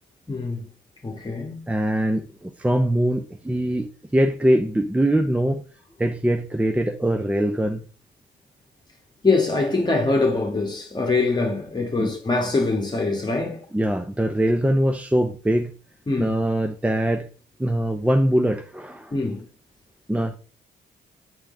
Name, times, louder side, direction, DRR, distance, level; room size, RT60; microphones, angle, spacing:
voice 1, 0.3-0.6 1.0-1.6 9.2-13.6 16.1-16.3 19.1-19.4, left 3 dB, 20° left, 1.3 m, -23 dB
voice 2, 1.7-5.6 6.0-7.8 12.0-12.1 13.7-15.7 16.2-17.3 17.6-19.1 20.1-20.4, right 1 dB, 5° right, 0.6 m, -22 dB
9.1 x 3.8 x 3.7 m
cardioid pair, 90°, 20 cm